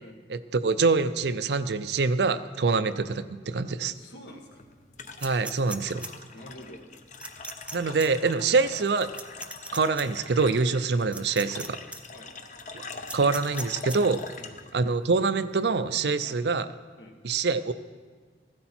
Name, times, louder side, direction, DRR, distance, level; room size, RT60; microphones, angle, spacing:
voice 1, 0.3-3.9 5.2-6.1 7.7-9.1 9.7-11.8 12.7-12.9 13.1-14.3 14.7-16.7 17.2-17.7, right 4 dB, 75° right, 13 dB, 0.6 m, -25 dB
voice 2, 3.9-4.7 6.3-6.9 12.1-12.5 14.4-14.5 16.2-16.4 17.0-17.2, left 1 dB, 75° left, 2 dB, 1.8 m, -47 dB
sound 1, 4.3-16.0, left 4 dB, 45° left, 0.8 m, -43 dB
sound 2, 5.2-6.1 7.2-7.7 8.0-8.1 9.1-10.0 11.1-11.7 11.9-12.0 13.1-14.0, right 3 dB, 5° right, 0.5 m, -37 dB
15.5 x 13.0 x 4.4 m, 1.5 s
head